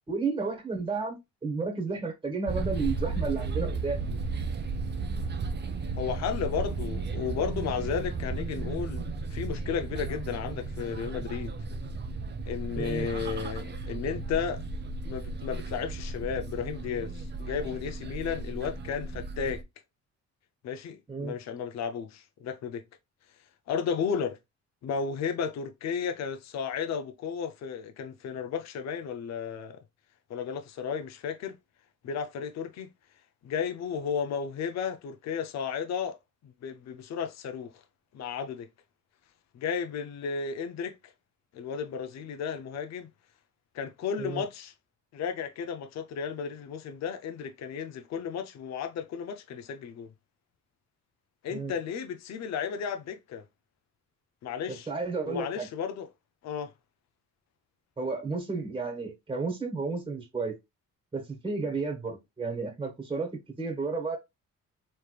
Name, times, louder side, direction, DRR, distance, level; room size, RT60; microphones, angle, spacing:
voice 1, 0.1-4.1 12.7-13.1 21.1-21.4 44.2-44.4 51.5-51.7 54.7-55.7 58.0-60.6 61.1-64.2, right 4 dB, 15° right, 1.3 m, -32 dB
sound 1, 2.5-19.6, right 3 dB, 35° right, 0.6 m, -34 dB
voice 2, 6.0-11.5 12.5-14.6 15.1-19.6 20.6-22.8 23.7-24.4 24.8-29.8 30.3-31.6 32.0-32.9 33.4-36.2 36.4-37.7 38.1-38.7 39.5-40.9 41.5-43.1 43.7-44.7 45.1-50.1 51.4-53.4 54.4-54.9 55.2-56.1 56.4-56.7, left 7 dB, 60° left, 0.6 m, -33 dB
3.3 x 3.2 x 2.3 m
cardioid pair, 90°, 30 cm